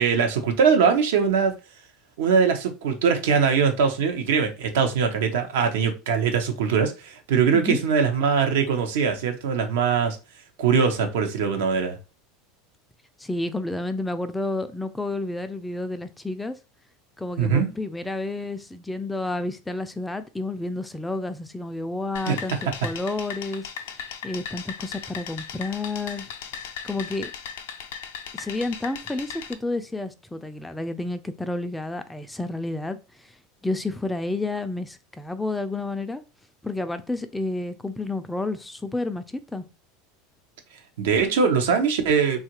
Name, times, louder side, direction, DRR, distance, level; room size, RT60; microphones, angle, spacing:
voice 1, 0.0-1.5 2.2-10.2 10.6-12.0 17.4-17.7 22.3-22.4 41.0-42.4, right 6 dB, 80° right, 5 dB, 0.6 m, -22 dB
voice 2, 13.2-16.6 17.2-22.6 22.8-23.7 24.2-26.3 26.8-27.3 28.3-33.3 33.6-36.2 36.6-39.6, left 2 dB, 10° left, 10 dB, 0.3 m, -30 dB
sound 1, 22.1-29.5, left 7 dB, 80° left, 0.4 m, -37 dB
2.9 x 2.4 x 2.9 m, 0.29 s
hypercardioid pair, 100°, 0 cm